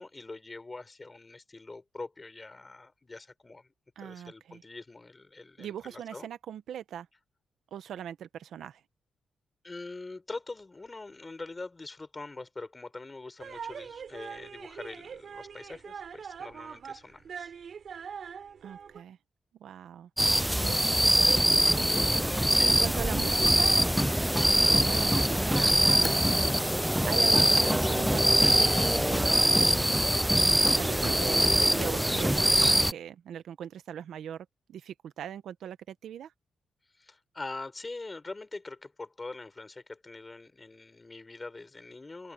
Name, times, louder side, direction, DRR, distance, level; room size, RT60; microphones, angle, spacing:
voice 1, 0.0-3.7 4.0-6.3 9.6-17.5 22.5-23.1 37.0-42.3, left 3 dB, 15° left, 5.7 m, -43 dB
voice 2, 4.0-4.6 5.6-7.1 7.7-8.8 18.6-19.2 19.6-20.1 20.6-21.5 22.6-23.8 24.6-26.4 27.0-29.7 30.4-36.3, right 9 dB, 70° right, 1.1 m, -40 dB
sound 1, 13.4-19.0, right 7 dB, 45° right, 3.9 m, -43 dB
sound 2, 20.2-32.9, equal, 5° right, 0.4 m, -23 dB
open air
wide cardioid pair, 175°, 0 cm